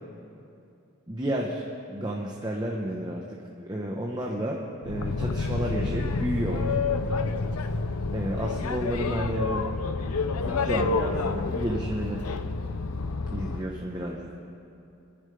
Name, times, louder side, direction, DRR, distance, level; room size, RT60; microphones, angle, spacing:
voice 1, 1.1-1.6 1.9-6.7 8.1-9.7 10.4-12.2 13.3-14.3, right 1 dB, 20° right, -2 dB, 1.0 m, -31 dB
Boat Water vehicle, 4.8-13.7, left 4 dB, 85° left, 0.7 m, -29 dB
28.5 x 10.5 x 3.4 m, 2.6 s
head